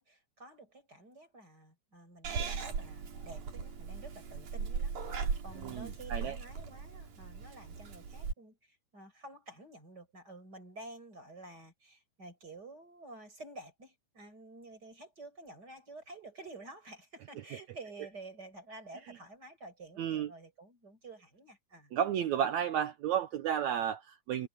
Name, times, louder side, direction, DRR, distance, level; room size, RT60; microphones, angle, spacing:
voice 1, 0.0-21.9, right 2 dB, 25° right, 5.9 m, -51 dB
Purr / Meow, 2.2-8.3, right 5 dB, 60° right, 4.7 m, -38 dB
voice 2, 5.6-6.3 20.0-20.3 21.9-24.5, right 9 dB, 75° right, 1.7 m, -32 dB
omnidirectional pair, 4.1 m